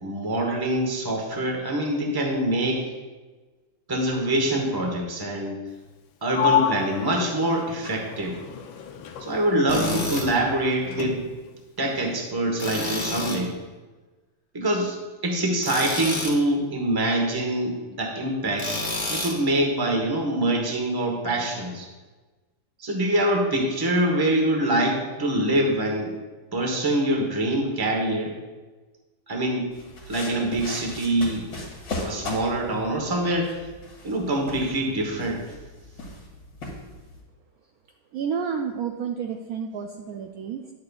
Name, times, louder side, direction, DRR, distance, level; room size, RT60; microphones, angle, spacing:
voice 1, 0.0-2.9 3.9-5.6 6.2-8.4 9.2-11.2 11.8-13.5 14.5-18.7 19.1-21.9 22.8-26.1 26.5-28.3 29.3-29.7 30.1-31.5 32.0-33.6 34.0-35.4, right 1 dB, 15° right, 1 dB, 0.8 m, -25 dB
Sliding door, 6.3-9.9 10.2-11.5, left 9 dB, 90° left, 1.5 m, -29 dB
Tools, 9.7-10.3 12.6-13.4 15.6-16.4 18.6-19.4, left 2 dB, 25° left, 1.0 m, -29 dB
sound 1, 29.7-37.2, left 2 dB, 65° left, 2.5 m, -38 dB
voice 2, 38.1-40.7, right 7 dB, 80° right, 3 dB, 0.8 m, -30 dB
10.5 x 7.5 x 2.4 m, 1.3 s
omnidirectional pair, 2.1 m